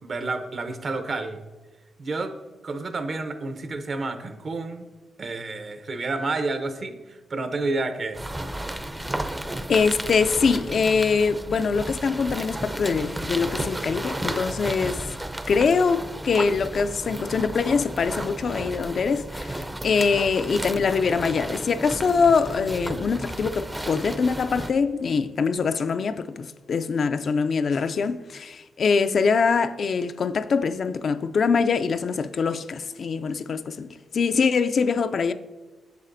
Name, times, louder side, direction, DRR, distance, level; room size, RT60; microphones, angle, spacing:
voice 1, 0.0-1.4 2.0-2.3 2.6-4.9 5.2-8.2, right 3 dB, 50° right, 0.7 m, -30 dB
sound 1, 8.1-24.7, right 1 dB, 15° right, 0.5 m, -33 dB
voice 2, 9.7-15.0 15.5-35.3, left 5 dB, 60° left, 0.3 m, -23 dB
8.3 x 6.5 x 2.6 m
supercardioid pair, 60°, 0 cm